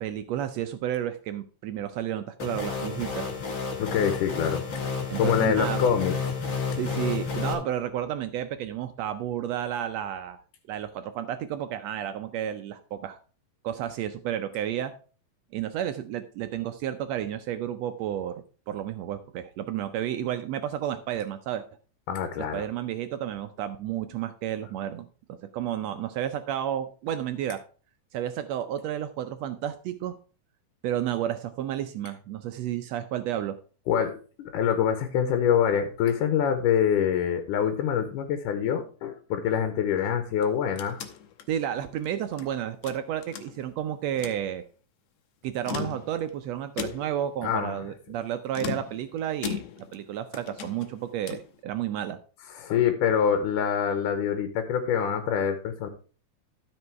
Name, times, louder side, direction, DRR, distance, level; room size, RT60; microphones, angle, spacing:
voice 1, 0.0-3.3 5.1-5.8 6.8-10.4 10.7-13.2 13.6-14.9 15.5-21.6 22.4-27.6 28.1-30.2 30.8-33.6 41.5-44.6 45.4-52.2, right 10 dB, 80° right, 9 dB, 1.5 m, -31 dB
sound 1, 2.4-7.5, left 5 dB, 45° left, 1.8 m, -31 dB
voice 2, 3.8-4.7 5.2-6.3 6.7-6.8 22.1-22.7 33.9-41.0 47.4-47.8 52.5-55.9, left 8 dB, 85° left, 7 dB, 2.4 m, -25 dB
sound 2, 40.3-42.5 42.8-43.8 44.1-44.4 45.5-46.3 46.8-47.3 48.5-50.0 50.3-51.5, left 8 dB, 70° left, 2.0 m, -38 dB
12.5 x 5.3 x 4.5 m, 0.38 s
omnidirectional pair, 3.6 m